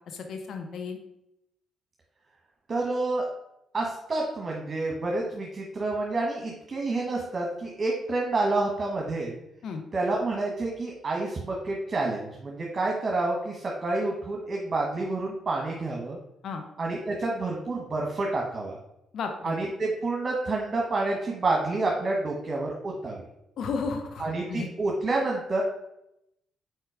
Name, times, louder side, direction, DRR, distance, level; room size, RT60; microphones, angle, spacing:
voice 1, 0.1-1.0 9.6-9.8 16.4-16.6 19.1-19.5 23.6-24.7, left 5 dB, 65° left, 5 dB, 0.9 m, -33 dB
voice 2, 2.7-3.3 3.7-9.4 9.9-16.2 16.8-18.8 19.4-23.2 24.2-25.6, right 2 dB, 40° right, -1 dB, 1.3 m, -29 dB
4.7 x 4.4 x 4.9 m, 0.83 s
hypercardioid pair, 50°, 0 cm